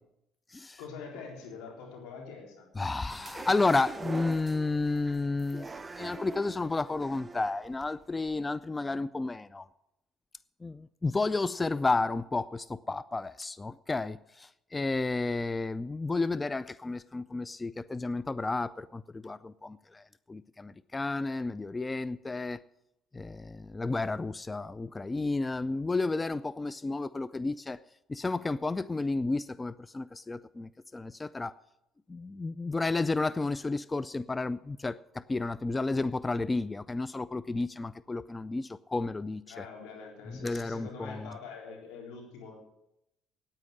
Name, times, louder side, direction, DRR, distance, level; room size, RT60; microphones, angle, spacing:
voice 1, 0.8-2.7 39.5-42.6, left 5 dB, 80° left, 1 dB, 3.8 m, -44 dB
voice 2, 2.8-5.7 6.0-9.7 10.6-20.0 20.3-22.6 23.1-27.8 28.1-31.6 32.1-39.6 40.4-41.3, left 3 dB, 20° left, 17 dB, 0.4 m, -32 dB
sound 1, 3.1-8.3, right 3 dB, 25° right, 0.7 m, -43 dB
9.4 x 9.1 x 9.9 m, 0.86 s
supercardioid pair, 75°, 0 cm